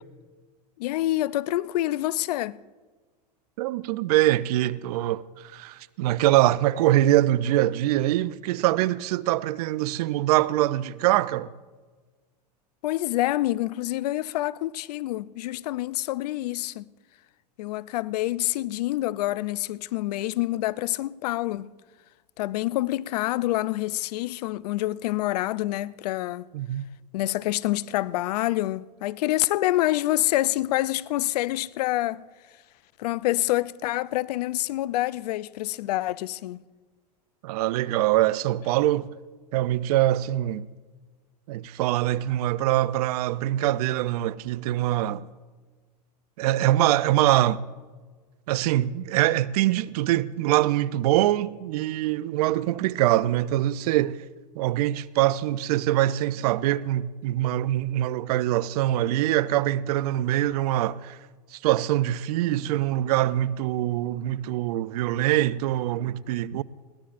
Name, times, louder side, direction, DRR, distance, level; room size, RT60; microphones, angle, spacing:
voice 1, 0.8-2.6 12.8-16.9 17.6-21.7 22.4-26.5 27.1-32.2 33.0-36.6, left 16 dB, 70° left, 0.4 m, -27 dB
voice 2, 3.6-11.5 26.5-26.8 37.4-39.1 39.5-40.7 41.5-45.3 46.4-47.6 48.5-54.3 54.6-61.2 61.5-66.6, right 14 dB, 65° right, 0.5 m, -24 dB
21.5 x 17.5 x 2.5 m
hypercardioid pair, 95°, 21 cm